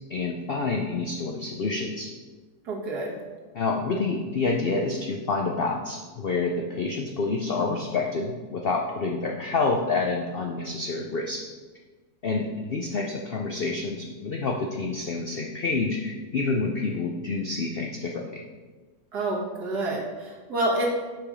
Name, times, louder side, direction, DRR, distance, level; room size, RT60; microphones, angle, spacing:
voice 1, 0.1-2.1 3.5-11.4 12.2-18.4, left 3 dB, 80° left, 1 dB, 0.5 m, -28 dB
voice 2, 2.6-3.2 19.1-20.9, right 2 dB, 70° right, -3 dB, 2.0 m, -28 dB
6.1 x 4.8 x 5.0 m, 1.3 s
omnidirectional pair, 1.8 m